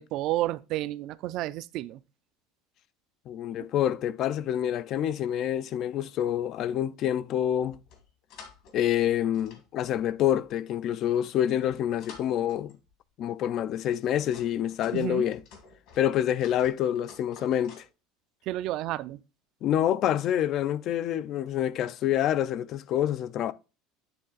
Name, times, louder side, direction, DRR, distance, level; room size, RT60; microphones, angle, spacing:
voice 1, 0.0-2.0 3.6-3.7 14.9-15.3 18.5-19.2, right 15 dB, 45° right, 0.3 m, -31 dB
voice 2, 3.3-7.8 8.7-12.7 13.2-15.4 16.0-17.8 19.6-23.5, left 11 dB, 40° left, 0.3 m, -27 dB
sound 1, 7.6-8.8 9.1-10.5 11.2-12.9 13.5-17.9, left 5 dB, 55° left, 1.7 m, -52 dB
10.0 x 3.3 x 3.9 m
cardioid pair, 165°, 0 cm